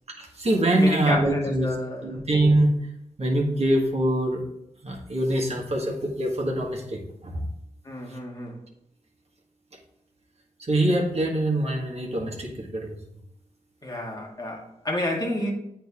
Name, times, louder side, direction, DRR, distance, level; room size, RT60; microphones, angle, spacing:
voice 1, 0.2-1.7 2.0-2.7 3.2-4.4 4.8-7.4 10.6-12.9, right 1 dB, 50° right, 1.6 m, -24 dB
voice 2, 0.8-2.2 7.8-8.6 13.8-15.5, left 1 dB, 30° left, 1.7 m, -30 dB
8.0 x 3.6 x 3.5 m
cardioid pair, 45°, 14 cm